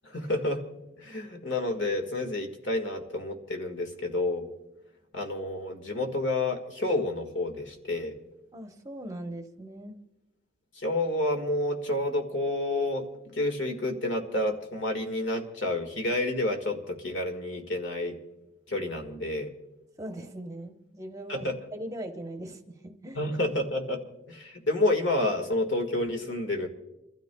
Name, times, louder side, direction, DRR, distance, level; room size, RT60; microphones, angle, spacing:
voice 1, 0.0-0.6 1.0-4.5 5.1-8.1 10.8-18.2 18.7-19.5 21.3-21.6 23.2-24.0 24.3-26.7, left 2 dB, 65° left, 4 dB, 1.7 m, -29 dB
voice 2, 8.5-10.0 20.0-23.2, right 1 dB, 15° right, 4 dB, 0.9 m, -40 dB
29.0 x 13.0 x 2.3 m, 0.96 s
head